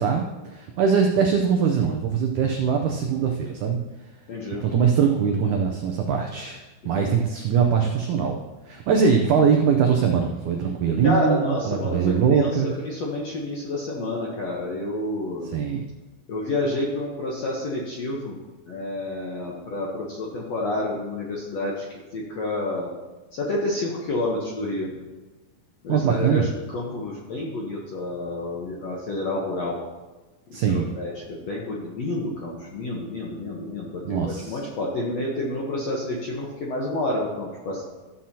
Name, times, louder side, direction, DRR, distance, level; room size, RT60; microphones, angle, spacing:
voice 1, 0.0-3.8 4.6-8.4 8.7-12.7 15.5-15.8 25.9-26.5 30.5-30.9 34.0-34.6, right 6 dB, 85° right, 2 dB, 1.7 m, -22 dB
voice 2, 4.3-4.7 6.8-7.1 11.0-12.5 12.8-15.5 16.3-18.4 18.7-21.8 22.1-22.9 23.3-24.9 25.8-29.8 30.5-37.8, left 2 dB, 70° left, -3 dB, 1.6 m, -29 dB
14.0 x 7.5 x 2.8 m, 1.2 s
omnidirectional pair, 4.4 m